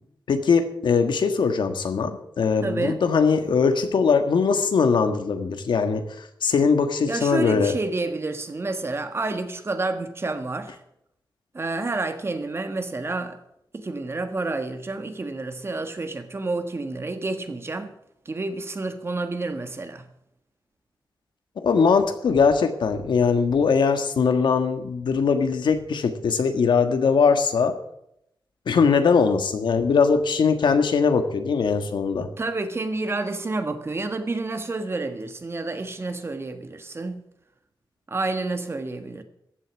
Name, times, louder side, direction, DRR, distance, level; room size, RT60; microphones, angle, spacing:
voice 1, 0.3-6.0 6.4-7.7 21.6-27.7 28.7-32.3, left 5 dB, 90° left, 1.6 m, -21 dB
voice 2, 2.6-3.0 7.1-10.8 11.5-13.4 13.7-17.9 18.2-20.0 32.2-37.3 38.1-39.2, right 3 dB, 35° right, 1.4 m, -29 dB
14.5 x 8.1 x 7.3 m
wide cardioid pair, 130°, 8 cm